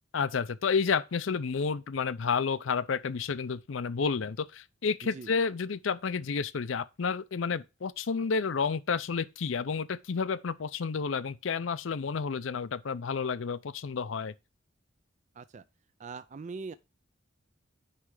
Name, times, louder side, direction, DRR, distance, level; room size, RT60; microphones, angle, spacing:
voice 1, 0.1-14.3, left 5 dB, 75° left, 0.5 m, -30 dB
voice 2, 16.0-16.7, right 4 dB, 40° right, 0.4 m, -41 dB
9.8 x 3.3 x 4.8 m
head